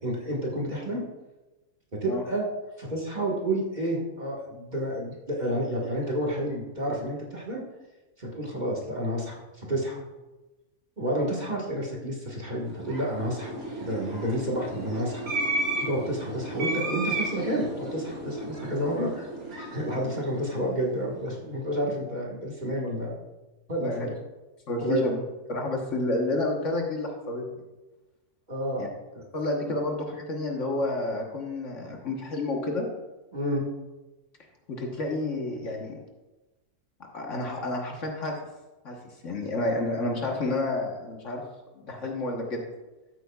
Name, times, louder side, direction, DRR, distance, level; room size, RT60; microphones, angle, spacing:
voice 1, 0.0-1.0 2.0-2.5 2.8-7.6 8.2-10.0 11.0-15.3 15.8-19.3 19.7-23.2 23.7-24.2 24.8-25.1 28.5-28.9 33.3-33.6, right 1 dB, 30° right, -3 dB, 1.7 m, -30 dB
sound 1, 12.6-21.1, right 2 dB, 70° right, 2.6 m, -34 dB
voice 2, 24.7-25.2 25.5-27.4 28.8-28.9 29.3-32.9 34.7-36.0 37.0-38.3 38.8-39.0 39.2-41.4 41.8-42.6, left 2 dB, 55° left, 1 dB, 1.5 m, -30 dB
13.5 x 8.4 x 2.3 m, 1.1 s
omnidirectional pair, 1.6 m